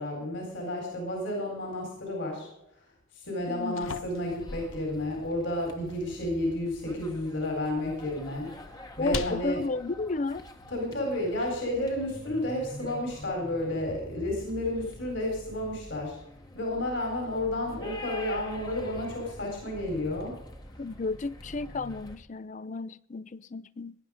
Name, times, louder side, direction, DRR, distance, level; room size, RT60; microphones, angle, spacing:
voice 1, 0.0-2.5 3.1-9.6 10.7-16.2 16.5-20.3 20.7-20.8 22.7-22.8, left 1 dB, 65° left, 4.3 m, -31 dB
sound 1, 3.3-11.3, left 4 dB, 85° left, 0.9 m, -44 dB
voice 2, 3.5-3.9 9.0-10.4 20.8-23.9, left 3 dB, 40° left, 0.5 m, -33 dB
sound 2, 4.1-22.2, left 1 dB, 20° left, 1.1 m, -46 dB
18.5 x 11.0 x 5.0 m
head